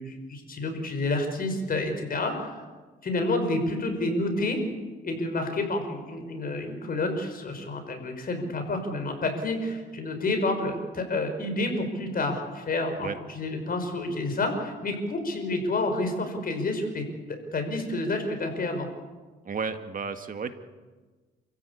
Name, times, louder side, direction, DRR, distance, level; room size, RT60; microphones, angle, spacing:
voice 1, 0.0-2.5 3.0-4.6 5.0-17.0 17.3-18.9, left 2 dB, 45° left, 5 dB, 5.8 m, -29 dB
voice 2, 19.5-20.6, right 5 dB, 45° right, 7 dB, 1.9 m, -32 dB
29.0 x 15.5 x 8.6 m, 1.3 s
cardioid pair, 90°, 20 cm